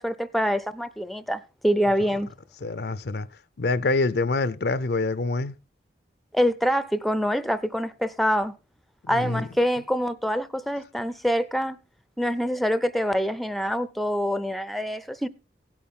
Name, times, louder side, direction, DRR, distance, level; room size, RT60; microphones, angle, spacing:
voice 1, 0.0-2.3 6.3-8.6 9.1-11.8 12.2-15.3, equal, ahead, 0.5 m, -25 dB
voice 2, 2.6-3.3 3.6-5.6 9.0-9.5, left 3 dB, 60° left, 0.5 m, -26 dB
17.0 x 8.7 x 3.7 m
head